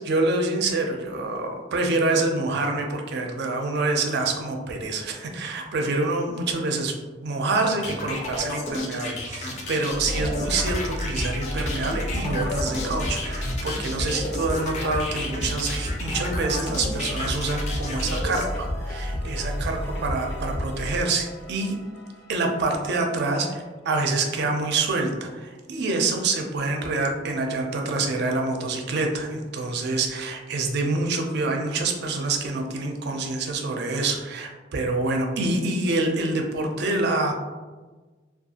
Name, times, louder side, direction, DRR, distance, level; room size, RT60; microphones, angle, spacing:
voice 1, 0.0-6.9 7.2-21.7 22.3-37.3, right 3 dB, 60° right, 3 dB, 0.4 m, -26 dB
sound 1, 7.8-18.5, left 2 dB, 40° left, 0.4 m, -32 dB
sound 2, 9.9-23.0, equal, 85° left, 0.9 m, -31 dB
2.4 x 2.3 x 2.7 m, 1.3 s
head